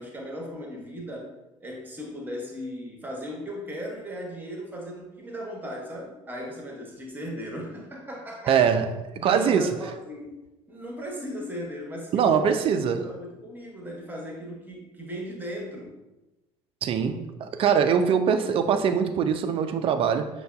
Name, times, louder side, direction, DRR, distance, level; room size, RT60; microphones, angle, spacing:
voice 1, 0.0-1.3 1.6-8.7 9.2-10.4 10.7-15.9, equal, 10° right, 0 dB, 1.0 m, -37 dB
voice 2, 8.5-9.7 12.1-13.1 16.8-20.3, right 7 dB, 35° right, 8 dB, 0.4 m, -23 dB
6.4 x 2.2 x 2.2 m, 1.0 s
figure-of-eight pair, 60°, 16 cm